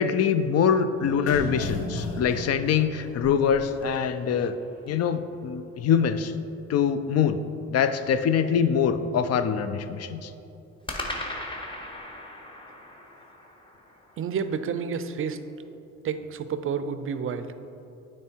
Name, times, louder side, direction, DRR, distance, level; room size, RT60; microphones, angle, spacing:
voice 1, 0.0-4.5 4.9-6.3 6.7-7.4 7.7-10.3, left 7 dB, 55° left, 11 dB, 0.4 m, -24 dB
sound 1, 1.0-3.8 4.1-4.2, left 2 dB, 80° left, 1.3 m, -35 dB
sound 2, 3.2-5.1 10.9-15.1, left 1 dB, 15° left, 1.0 m, -39 dB
voice 2, 14.2-15.4 16.0-17.5, right 6 dB, 45° right, 11 dB, 0.4 m, -30 dB
9.1 x 3.2 x 4.4 m, 2.8 s
cardioid pair, 90°, 30 cm